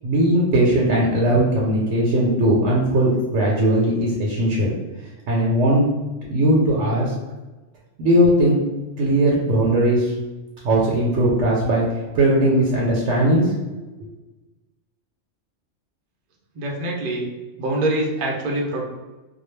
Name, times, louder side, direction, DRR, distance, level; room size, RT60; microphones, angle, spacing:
voice 1, 0.0-4.7 5.3-5.8 6.3-7.1 8.0-8.6 9.0-10.1 10.6-11.8 12.1-13.5, right 1 dB, 80° right, -4 dB, 0.9 m, -18 dB
voice 2, 16.5-17.3 17.6-18.8, right 1 dB, 55° right, -1 dB, 0.6 m, -24 dB
2.2 x 2.2 x 3.1 m, 1.2 s
omnidirectional pair, 1.2 m